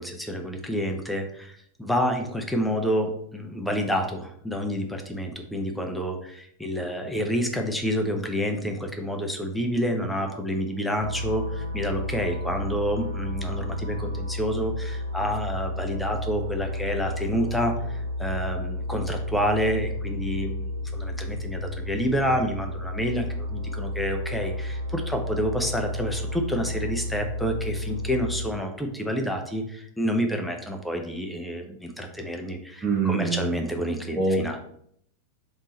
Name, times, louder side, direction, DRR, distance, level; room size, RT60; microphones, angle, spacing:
voice 1, 0.0-34.6, equal, ahead, 3 dB, 0.6 m, -28 dB
sound 1, 11.0-28.5, left 1 dB, 75° right, 0.4 m, -32 dB
voice 2, 32.8-33.5 34.1-34.6, right 3 dB, 20° right, -6 dB, 1.0 m, -25 dB
3.7 x 2.6 x 3.8 m, 0.69 s
figure-of-eight pair, 90°, 0 cm